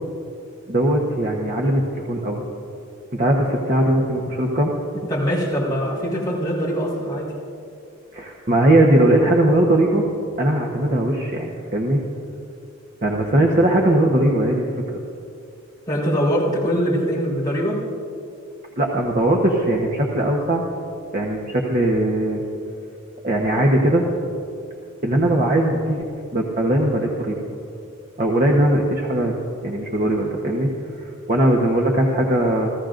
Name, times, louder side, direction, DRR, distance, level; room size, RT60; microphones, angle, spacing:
voice 1, 0.7-2.4 3.1-4.7 8.1-10.0 10.4-12.0 13.0-15.0 18.8-20.6 21.1-22.4 23.2-24.0 25.0-27.4 28.2-29.3 29.6-30.7 30.9-32.7, right 1 dB, 40° right, 0 dB, 1.1 m, -19 dB
voice 2, 5.1-7.3 15.9-17.8, equal, 20° left, -6 dB, 4.1 m, -22 dB
28.0 x 16.0 x 2.6 m, 2.6 s
head